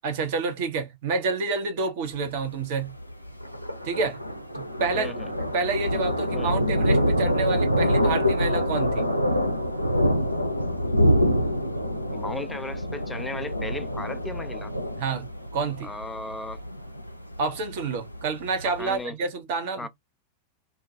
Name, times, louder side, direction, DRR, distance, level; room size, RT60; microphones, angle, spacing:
voice 1, 0.0-2.9 3.8-4.2 4.5-5.1 5.5-9.0 15.0-15.9 17.4-19.9, right 4 dB, 50° right, 0.8 m, -28 dB
Thunder, 2.0-19.0, equal, 90° left, 0.4 m, -26 dB
voice 2, 4.9-5.3 6.3-6.6 12.1-14.7 15.8-16.6 18.8-19.2 19.8-19.9, left 2 dB, 10° left, 0.4 m, -36 dB
2.3 x 2.2 x 2.7 m
figure-of-eight pair, 90°, 0 cm